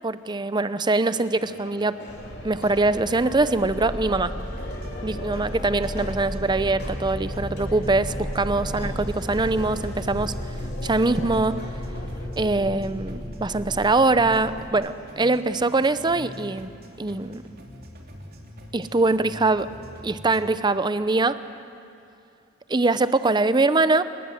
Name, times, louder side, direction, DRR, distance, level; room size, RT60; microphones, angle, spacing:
voice 1, 0.0-2.0 2.4-4.3 5.0-10.3 10.8-11.7 12.4-16.7 17.0-17.4 18.7-19.7 20.0-21.4 22.7-24.0, right 3 dB, 20° right, 13 dB, 0.6 m, -23 dB
sound 1, 1.1-12.3, left 1 dB, 55° left, 3.5 m, -41 dB
sound 2, 2.1-14.7, equal, 25° left, 2.3 m, -34 dB
sound 3, 4.6-20.6, equal, 50° right, 2.9 m, -44 dB
26.0 x 20.5 x 8.0 m, 2.6 s
head